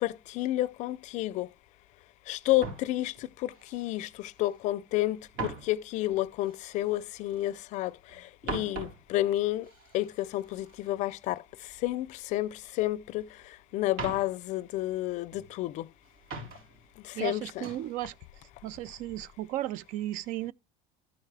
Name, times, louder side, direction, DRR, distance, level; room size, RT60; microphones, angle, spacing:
voice 1, 0.0-1.5 2.3-3.1 3.4-4.1 4.4-5.2 5.7-7.9 8.5-9.6 9.9-11.4 11.8-12.1 12.3-12.5 12.8-13.2 13.7-15.8 17.2-17.6, left 15 dB, 50° left, 0.5 m, -30 dB
sound 1, 2.6-4.6 4.9-7.7 8.0-12.3 12.5-13.5 13.8-15.6 16.0-16.9 17.2-17.9 18.3-18.6, right 3 dB, 70° right, 4.1 m, -43 dB
voice 2, 17.1-18.1 18.6-20.5, right 14 dB, 55° right, 0.5 m, -35 dB
13.0 x 4.6 x 3.3 m
supercardioid pair, 135°, 16 cm